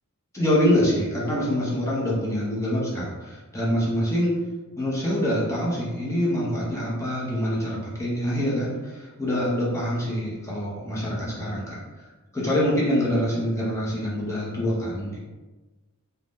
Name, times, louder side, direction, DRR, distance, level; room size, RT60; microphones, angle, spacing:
voice 1, 0.3-4.4 4.8-11.8 12.3-15.2, equal, 15° left, -6 dB, 0.7 m, -25 dB
2.6 x 2.1 x 3.4 m, 1.2 s
head